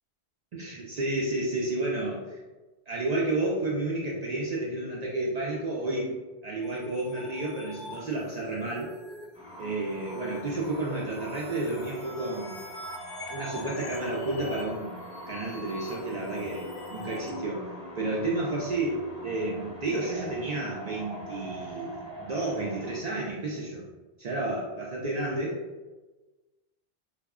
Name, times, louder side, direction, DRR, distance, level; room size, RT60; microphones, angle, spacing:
voice 1, 0.5-2.4 2.9-6.1 6.4-8.9 9.6-12.6 13.3-14.9 15.3-17.7 18.0-23.8 24.2-25.6, right 2 dB, 55° right, -4 dB, 0.4 m, -31 dB
sound 1, 6.6-17.3, left 2 dB, 50° left, 0.5 m, -45 dB
sound 2, 9.3-23.0, equal, 5° right, 0.7 m, -43 dB
2.2 x 2.1 x 3.4 m, 1.2 s
omnidirectional pair, 1.1 m